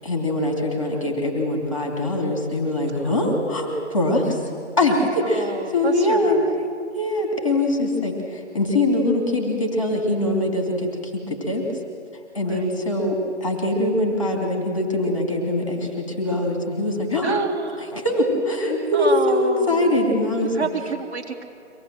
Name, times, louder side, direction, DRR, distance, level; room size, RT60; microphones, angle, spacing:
voice 1, 0.0-4.4 4.8-6.4 6.9-11.6 12.3-17.3 17.9-20.5, left 1 dB, 25° left, 2 dB, 2.7 m, -23 dB
voice 2, 3.0-3.9 5.2-6.6 12.4-12.8 17.2-17.9 18.9-20.1 20.5-21.4, right 4 dB, 60° right, 1 dB, 3.3 m, -29 dB
24.5 x 18.0 x 7.7 m, 2.4 s
figure-of-eight pair, 180°, 37 cm